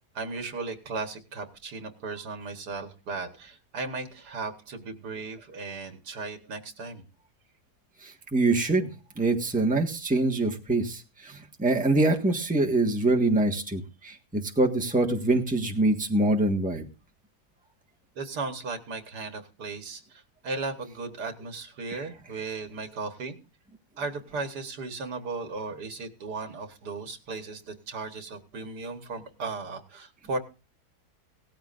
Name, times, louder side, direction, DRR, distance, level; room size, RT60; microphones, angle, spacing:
voice 1, 0.1-7.0 18.2-23.3 24.0-30.4, right 3 dB, 85° right, 7 dB, 2.0 m, -36 dB
voice 2, 8.3-8.9 9.2-16.9, right 2 dB, 5° right, 1 dB, 1.4 m, -24 dB
18.0 x 14.0 x 2.6 m, 0.33 s
omnidirectional pair, 1.7 m